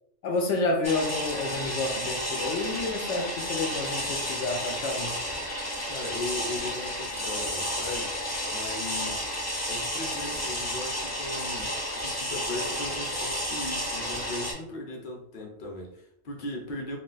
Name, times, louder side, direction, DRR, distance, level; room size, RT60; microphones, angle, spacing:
voice 1, 0.2-5.1, left 2 dB, 80° left, 2 dB, 0.9 m, -29 dB
sound 1, 0.8-14.5, equal, 20° left, 0.5 m, -32 dB
voice 2, 5.9-8.2 8.5-9.3 9.7-17.0, left 2 dB, 45° left, 0 dB, 0.8 m, -38 dB
2.4 x 2.3 x 3.9 m, 0.74 s
omnidirectional pair, 1.2 m